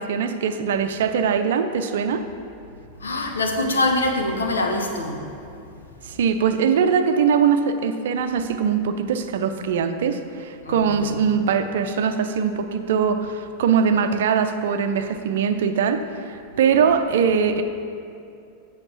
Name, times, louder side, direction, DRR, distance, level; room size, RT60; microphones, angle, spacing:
voice 1, 0.0-2.2 6.0-17.6, right 6 dB, 60° right, 8 dB, 0.5 m, -22 dB
voice 2, 3.0-5.2 10.6-11.1 16.5-16.9, left 2 dB, 70° left, 3 dB, 1.0 m, -24 dB
7.9 x 6.5 x 5.9 m, 2.5 s
figure-of-eight pair, 90°, 0 cm